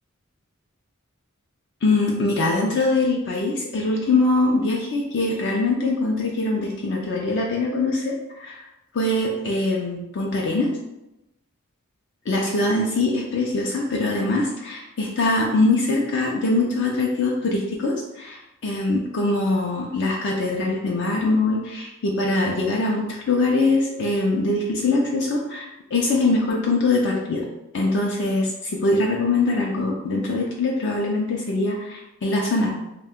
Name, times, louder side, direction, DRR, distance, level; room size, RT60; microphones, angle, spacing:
voice 1, 1.8-8.6 8.9-10.7 12.3-27.4 27.7-32.7, left 2 dB, 55° left, -1 dB, 0.4 m, -23 dB
2.6 x 2.2 x 3.5 m, 0.91 s
head